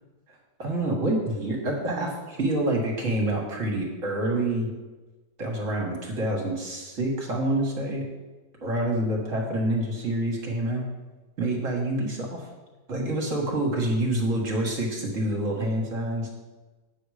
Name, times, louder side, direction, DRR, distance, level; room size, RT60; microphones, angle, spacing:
voice 1, 0.6-4.7 5.4-8.1 8.6-10.8 11.4-12.4 12.9-16.3, right 1 dB, 45° right, 0 dB, 2.0 m, -27 dB
9.0 x 6.9 x 5.0 m, 1.2 s
omnidirectional pair, 1.9 m